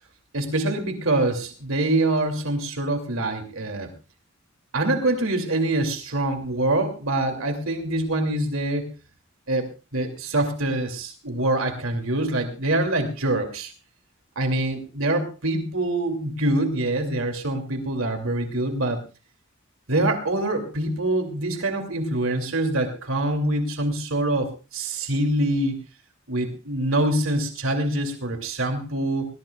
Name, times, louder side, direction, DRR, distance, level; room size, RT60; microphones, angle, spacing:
voice 1, 0.3-3.9 4.7-8.9 9.5-13.7 14.4-19.0 19.9-25.7 26.3-29.3, right 1 dB, 85° right, 5 dB, 2.7 m, -25 dB
22.0 x 20.0 x 2.4 m, 0.32 s
head